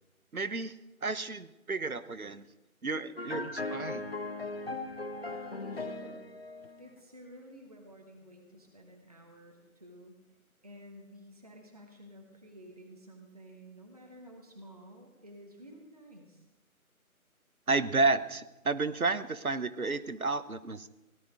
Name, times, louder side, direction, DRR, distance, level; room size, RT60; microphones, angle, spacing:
voice 1, 0.3-0.8 1.0-2.5 2.8-4.1 17.7-20.9, right 3 dB, 70° right, 14 dB, 1.0 m, -31 dB
sound 1, 3.2-6.9, left 2 dB, 45° left, 1.0 m, -38 dB
voice 2, 5.2-6.2 6.8-10.1 10.6-16.4, equal, 25° right, 1 dB, 1.3 m, -52 dB
17.5 x 12.0 x 4.9 m, 0.98 s
figure-of-eight pair, 165°, 44 cm